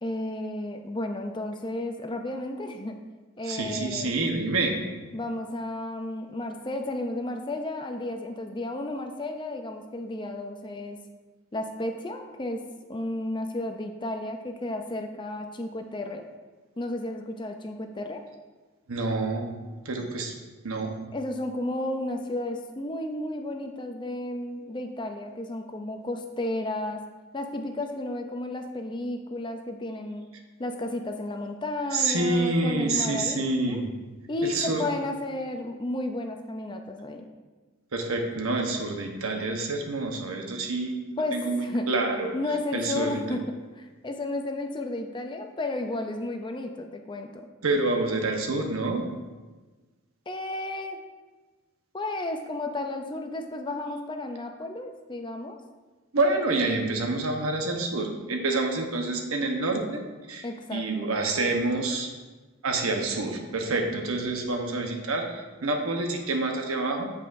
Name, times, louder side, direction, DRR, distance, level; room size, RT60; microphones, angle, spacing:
voice 1, 0.0-3.0 3.4-4.1 5.1-11.0 11.5-12.6 12.9-16.2 16.8-18.2 21.1-27.0 27.3-30.3 30.6-33.8 34.3-37.3 41.2-41.9 42.3-43.4 43.8-47.5 50.3-51.1 51.9-55.6 60.4-60.9, left 1 dB, 20° left, 5 dB, 0.4 m, -33 dB
voice 2, 3.4-4.7 18.9-19.5 19.8-20.3 20.6-20.9 31.9-33.9 34.4-34.8 37.9-42.3 42.7-43.4 47.6-49.0 56.1-60.0 60.3-60.4 60.7-62.1 62.6-67.1, right 2 dB, 75° right, 3 dB, 1.0 m, -27 dB
8.4 x 7.5 x 2.6 m, 1.3 s
head